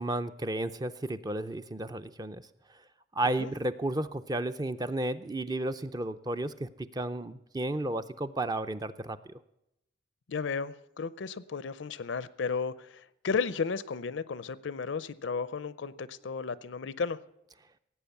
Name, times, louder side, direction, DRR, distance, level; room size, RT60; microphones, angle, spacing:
voice 1, 0.0-2.4 3.2-9.2, right 1 dB, 20° right, 0.5 m, -33 dB
voice 2, 10.3-17.2, left 5 dB, 65° left, 0.5 m, -34 dB
17.0 x 8.5 x 7.0 m
head